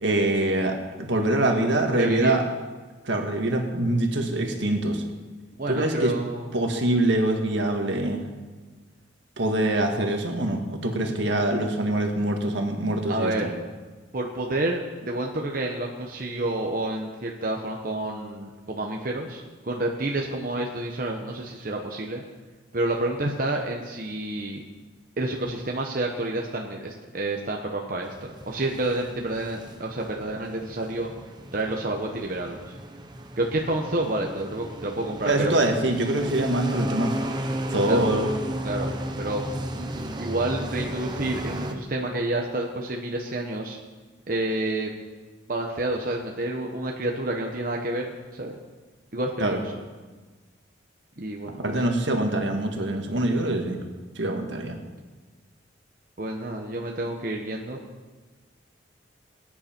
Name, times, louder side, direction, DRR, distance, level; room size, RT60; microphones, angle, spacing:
voice 1, 0.0-2.4 3.0-5.0 5.7-6.1 6.5-8.2 9.4-13.5 35.2-37.1 37.7-38.3 49.4-49.6 51.6-53.8 54.1-54.8, right 1 dB, 70° right, 3 dB, 1.8 m, -24 dB
voice 2, 1.9-2.4 5.5-6.5 10.9-11.2 13.1-13.5 14.1-22.2 22.7-24.6 25.2-31.1 31.5-32.7 33.4-35.5 37.8-38.1 38.6-39.4 39.7-43.8 44.3-44.9 45.5-48.6 49.1-49.8 51.2-51.8 56.2-57.8, right 2 dB, 45° right, 0 dB, 1.1 m, -29 dB
sound 1, 28.0-41.7, right 1 dB, 20° right, 0.9 m, -34 dB
20.0 x 9.8 x 4.5 m, 1.4 s
head